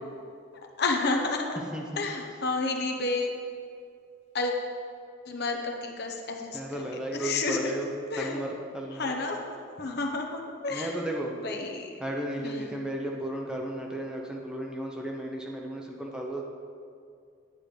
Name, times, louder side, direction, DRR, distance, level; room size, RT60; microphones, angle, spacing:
voice 1, 0.8-1.6 2.0-3.3 4.3-4.5 5.3-7.8 8.1-8.4 8.9-11.0 11.3-11.9 12.4-12.8, left 3 dB, 55° left, 2 dB, 0.9 m, -31 dB
voice 2, 6.5-7.9 8.2-8.5 8.7-9.1 10.7-11.3 12.0-16.4, right 1 dB, 5° right, -1 dB, 0.7 m, -34 dB
10.0 x 8.6 x 3.3 m, 2.3 s
head